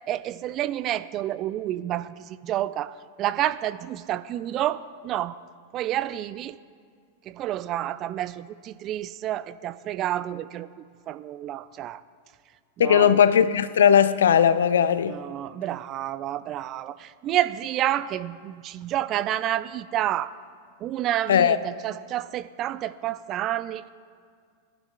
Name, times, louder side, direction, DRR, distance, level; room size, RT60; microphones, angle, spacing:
voice 1, 0.1-5.4 5.7-6.6 7.3-10.7 11.1-12.0 12.8-13.2 15.1-20.3 20.8-23.9, right 12 dB, 35° right, 0.3 m, -29 dB
voice 2, 12.8-15.2 21.3-21.6, left 8 dB, 65° left, 0.4 m, -18 dB
19.5 x 11.5 x 2.3 m
figure-of-eight pair, 90°, 0 cm